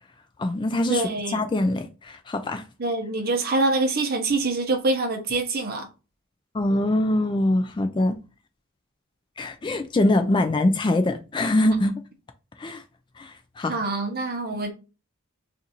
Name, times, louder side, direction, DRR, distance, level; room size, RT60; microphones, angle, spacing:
voice 1, 0.4-1.0 1.3-2.7 6.5-8.1 9.4-12.0 12.6-12.8 13.2-13.8, left 1 dB, 20° left, 0.3 m, -23 dB
voice 2, 0.9-1.4 2.8-5.9 13.7-14.7, right 2 dB, 45° right, 0.8 m, -25 dB
2.6 x 2.5 x 4.1 m
head